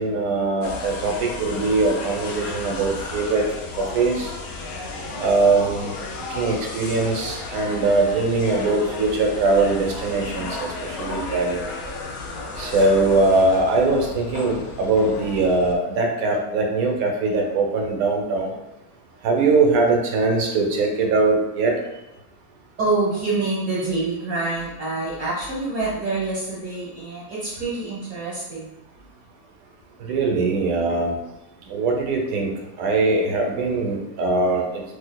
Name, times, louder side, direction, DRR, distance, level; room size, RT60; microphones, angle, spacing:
voice 1, 0.0-3.4 3.8-4.3 5.2-5.9 6.3-11.6 12.6-18.5 19.2-21.7 30.0-31.2 31.7-32.5 32.8-34.8, right 3 dB, 80° right, 1 dB, 1.1 m, -21 dB
sound 1, 0.6-15.7, left 3 dB, 70° left, 1.0 m, -33 dB
voice 2, 4.9-5.2 12.2-12.9 22.8-28.7, right 3 dB, 35° right, -10 dB, 1.1 m, -27 dB
4.0 x 2.7 x 2.2 m, 0.94 s
omnidirectional pair, 1.5 m